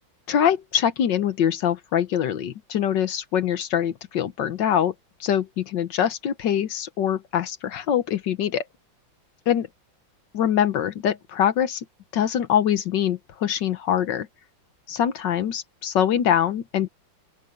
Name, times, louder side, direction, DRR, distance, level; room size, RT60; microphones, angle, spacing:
voice 1, 0.3-4.9 5.2-8.6 9.5-9.7 10.3-11.8 12.1-14.3 14.9-16.9, left 9 dB, 70° left, 1.6 m, -23 dB
open air
omnidirectional pair, 2.1 m